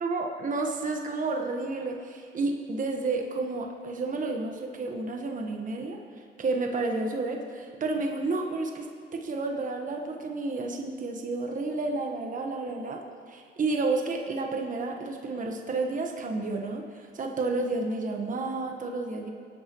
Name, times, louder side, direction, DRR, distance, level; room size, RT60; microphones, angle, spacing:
voice 1, 0.0-6.0 6.4-19.3, right 3 dB, 40° right, 2 dB, 1.2 m, -31 dB
23.5 x 9.2 x 3.0 m, 2.2 s
cardioid pair, 90°, 20 cm